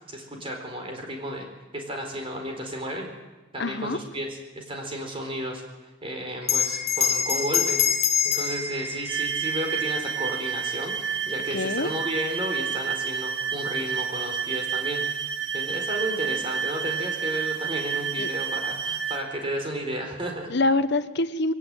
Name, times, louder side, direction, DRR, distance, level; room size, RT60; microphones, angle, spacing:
voice 1, 0.1-1.5 1.7-3.1 3.5-5.6 6.0-20.5, right 1 dB, 25° right, 3 dB, 4.5 m, -33 dB
voice 2, 3.6-4.0 11.5-11.9 18.2-18.3 20.5-21.5, left 2 dB, 55° left, 11 dB, 1.1 m, -25 dB
Bell, 6.4-11.3, left 7 dB, 35° left, 1.8 m, -27 dB
sound 1, 9.1-19.2, right 7 dB, 60° right, 2.2 m, -30 dB
22.0 x 17.5 x 9.2 m, 1.1 s
head